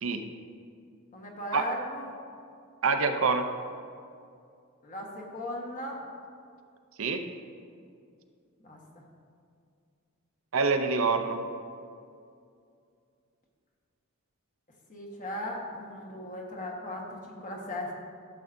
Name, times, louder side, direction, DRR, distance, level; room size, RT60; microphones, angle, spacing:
voice 1, 1.1-2.1 4.8-6.0 8.6-8.8 14.9-17.9, left 1 dB, 40° left, -1 dB, 1.4 m, -37 dB
voice 2, 2.8-3.5 7.0-7.2 10.5-11.4, right 4 dB, 75° right, 6 dB, 0.6 m, -25 dB
12.5 x 7.3 x 2.6 m, 2.4 s
head